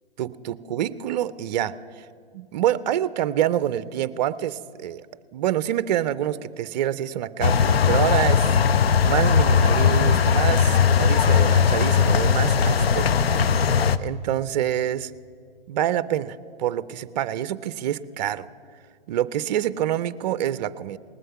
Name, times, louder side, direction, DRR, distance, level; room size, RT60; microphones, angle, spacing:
voice 1, 0.2-2.1 2.3-5.1 5.3-8.5 8.8-13.1 14.0-15.1 15.7-18.5 19.1-21.0, right 11 dB, 45° right, 16 dB, 0.5 m, -26 dB
sound 1, 7.4-14.0, left 6 dB, 85° left, 0.6 m, -19 dB
19.0 x 7.8 x 5.8 m, 2.3 s
hypercardioid pair, 130°, 30 cm